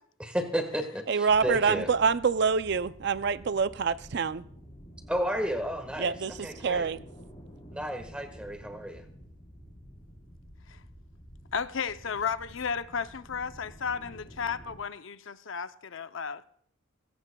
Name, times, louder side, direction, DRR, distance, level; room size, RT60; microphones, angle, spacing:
voice 1, 0.2-1.9 5.1-6.1 6.4-6.9 7.7-9.0, equal, 5° right, 1.5 m, -32 dB
voice 2, 1.1-4.4 6.0-7.0, right 5 dB, 55° right, 0.4 m, -26 dB
sound 1, 1.3-14.8, equal, 25° left, 4.1 m, -50 dB
voice 3, 11.5-16.4, left 6 dB, 70° left, 0.6 m, -33 dB
20.0 x 16.5 x 2.3 m
head